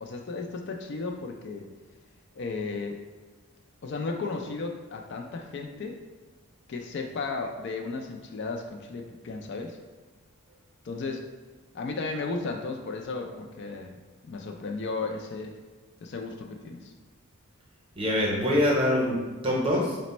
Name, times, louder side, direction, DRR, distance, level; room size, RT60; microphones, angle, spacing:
voice 1, 0.0-1.7 2.4-3.0 3.8-6.0 6.7-9.8 10.8-11.3 11.7-14.0 14.2-15.6 16.0-16.9, left 3 dB, 50° left, 3 dB, 0.3 m, -34 dB
voice 2, 18.0-20.0, left 1 dB, 25° right, -3 dB, 0.7 m, -24 dB
4.1 x 2.1 x 4.1 m, 1.3 s
head